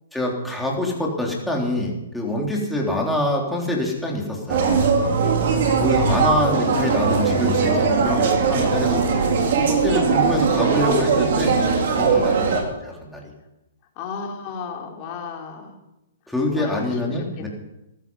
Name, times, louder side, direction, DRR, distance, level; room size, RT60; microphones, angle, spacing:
voice 1, 0.1-4.8 5.8-9.0 9.6-11.6 11.9-13.3 16.3-17.5, left 1 dB, ahead, -2 dB, 3.5 m, -25 dB
sound 1, 4.5-12.6, right 5 dB, 60° right, 3.7 m, -20 dB
voice 2, 5.2-5.8 9.8-10.0 12.1-12.5 14.0-15.8 16.4-17.5, left 5 dB, 35° left, 0 dB, 3.8 m, -34 dB
15.0 x 13.0 x 5.5 m, 0.91 s
hypercardioid pair, 140°, 0 cm